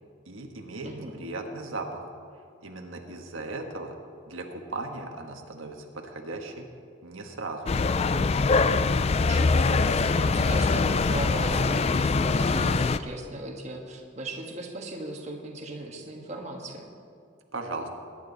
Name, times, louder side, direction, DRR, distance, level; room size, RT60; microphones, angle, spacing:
voice 1, 0.3-2.1 2.6-3.9 4.3-6.6 7.0-7.7 17.5-17.9, right 2 dB, 85° right, 3 dB, 1.5 m, -37 dB
voice 2, 0.8-1.2 9.2-16.9, right 1 dB, 35° right, 1 dB, 1.5 m, -37 dB
sound 1, 7.7-13.0, left 4 dB, 30° left, 0.3 m, -23 dB
22.0 x 10.5 x 4.1 m, 2.3 s
head